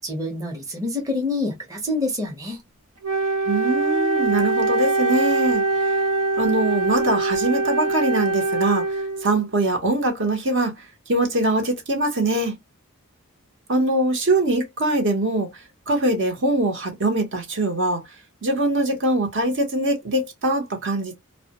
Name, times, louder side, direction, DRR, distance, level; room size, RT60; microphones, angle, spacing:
voice 1, 0.0-2.6, left 2 dB, 15° right, 0.7 m, -27 dB
Wind instrument woodwind instrument, 3.0-9.4, right 3 dB, 85° right, 0.7 m, -23 dB
voice 2, 3.5-5.9 6.4-8.8 9.2-10.7 11.1-12.5 13.7-15.5 15.9-18.0 18.4-21.2, right 2 dB, 55° right, 0.8 m, -22 dB
2.1 x 2.1 x 2.8 m
head